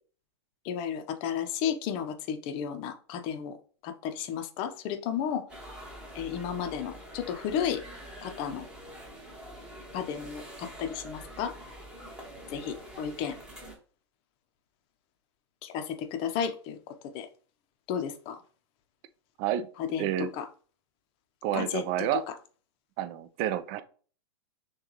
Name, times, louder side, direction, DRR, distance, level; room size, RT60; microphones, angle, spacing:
voice 1, 0.6-3.6 3.8-5.4 6.1-7.8 8.2-8.7 9.9-11.6 12.5-13.4 15.6-16.8 17.1-17.3 17.9-18.4 19.8-20.5 21.5-22.1, left 8 dB, 40° left, 0.6 m, -33 dB
sound 1, 5.5-13.8, equal, 5° right, 1.3 m, -45 dB
voice 2, 20.0-20.3 21.4-22.2 23.0-23.8, right 11 dB, 40° right, 0.5 m, -29 dB
6.1 x 2.3 x 3.0 m
hypercardioid pair, 120°, 14 cm